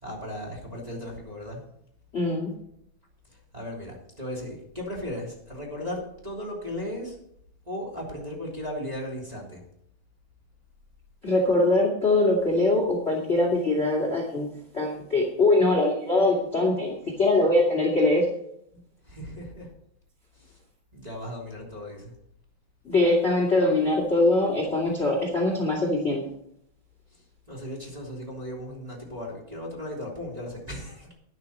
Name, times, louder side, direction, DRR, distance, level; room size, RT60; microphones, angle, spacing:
voice 1, 0.0-1.6 3.5-7.2 7.6-9.6 19.1-19.7 20.4-20.6 20.9-22.1 27.1-27.2 27.5-31.1, left 1 dB, 10° right, -3 dB, 2.2 m, -36 dB
voice 2, 2.1-2.5 11.2-14.5 14.7-18.2 22.8-26.2, left 2 dB, 45° left, 0 dB, 0.8 m, -22 dB
12.0 x 11.0 x 4.3 m, 0.73 s
omnidirectional pair, 5.6 m